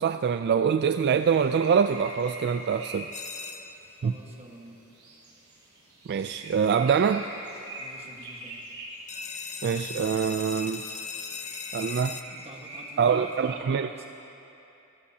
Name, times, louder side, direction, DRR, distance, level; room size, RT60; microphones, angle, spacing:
voice 1, 0.0-3.1 4.0-4.1 6.1-7.3 9.6-10.8 11.7-12.2 13.0-13.9, right 6 dB, 50° right, 9 dB, 0.3 m, -24 dB
sound 1, 1.0-13.5, right 1 dB, 85° right, 3.7 m, -45 dB
sound 2, 3.1-3.9 9.1-12.2, left 5 dB, 35° left, 0.6 m, -38 dB
voice 2, 4.0-4.8 7.8-8.6 12.3-14.1, right 1 dB, 30° right, 0 dB, 1.5 m, -46 dB
25.0 x 15.5 x 2.8 m, 2.8 s
head